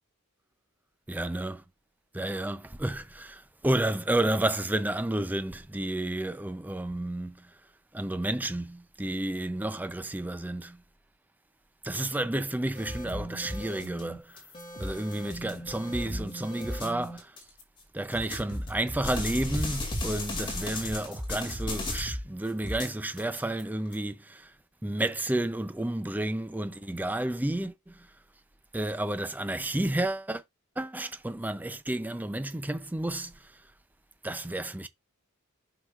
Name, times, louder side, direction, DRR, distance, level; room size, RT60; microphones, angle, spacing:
voice 1, 1.1-1.6 2.1-7.5 7.9-10.8 11.8-14.4 14.8-17.4 17.9-24.5 24.8-28.1 28.7-30.4 30.8-33.5 34.2-34.9, right 1 dB, 10° right, 0.4 m, -31 dB
sound 1, 12.8-17.6 18.1-22.3 22.6-23.9, left 1 dB, 25° left, 2.2 m, -35 dB
7.7 x 5.9 x 2.3 m
head